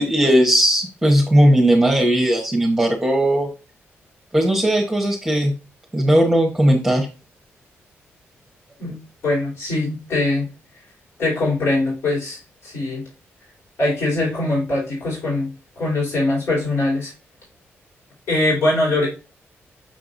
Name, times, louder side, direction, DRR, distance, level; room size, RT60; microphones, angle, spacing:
voice 1, 0.0-3.5 4.3-5.5 5.9-7.1, right 1 dB, 5° right, -1 dB, 1.1 m, -17 dB
voice 2, 9.2-10.4 11.2-12.4 12.6-13.0 13.8-15.5 15.8-17.1 18.3-19.1, left 2 dB, 75° left, -5 dB, 3.3 m, -21 dB
6.6 x 5.7 x 2.6 m, 0.32 s
wide cardioid pair, 145°, 5 cm